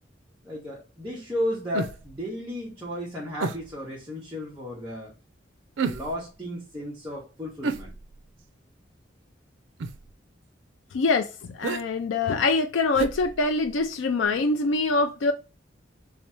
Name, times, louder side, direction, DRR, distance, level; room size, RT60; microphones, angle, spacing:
voice 1, 0.4-5.1 5.8-7.9, left 1 dB, 10° right, 1.4 m, -34 dB
sound 1, 1.7-2.2 3.4-3.8 5.8-6.3 7.6-8.4 9.8-10.1 11.6-11.8 12.9-13.9 14.2-14.3, right 4 dB, 85° right, 0.5 m, -32 dB
voice 2, 10.9-15.3, left 3 dB, 85° left, 0.4 m, -24 dB
3.6 x 3.2 x 4.3 m
head